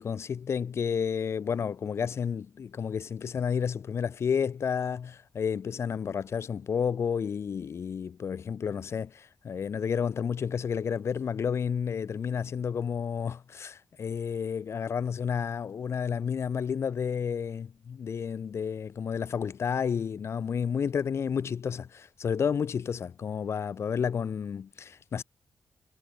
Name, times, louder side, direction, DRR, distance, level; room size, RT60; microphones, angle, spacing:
voice 1, 0.0-25.2, left 7 dB, 65° left, 1.6 m, -31 dB
wide cardioid pair, 125°, 5 cm